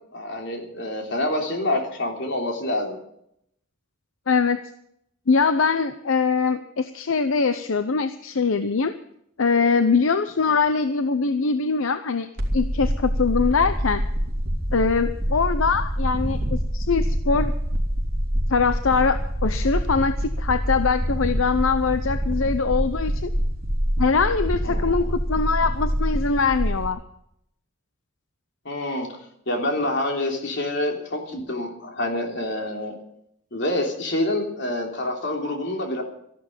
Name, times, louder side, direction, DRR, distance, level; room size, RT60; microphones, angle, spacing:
voice 1, 0.1-3.0 10.5-10.6 24.6-25.1 28.6-29.1 29.5-32.9 33.5-36.0, left 1 dB, 60° left, 2 dB, 3.3 m, -27 dB
voice 2, 4.3-4.6 5.3-8.9 9.4-12.3 12.5-14.0 14.7-17.5 18.5-23.3 24.0-27.0, left 4 dB, 80° left, 11 dB, 0.7 m, -22 dB
sound 1, 12.4-26.9, equal, 50° right, 3.3 m, -26 dB
13.5 x 12.0 x 7.3 m, 0.75 s
head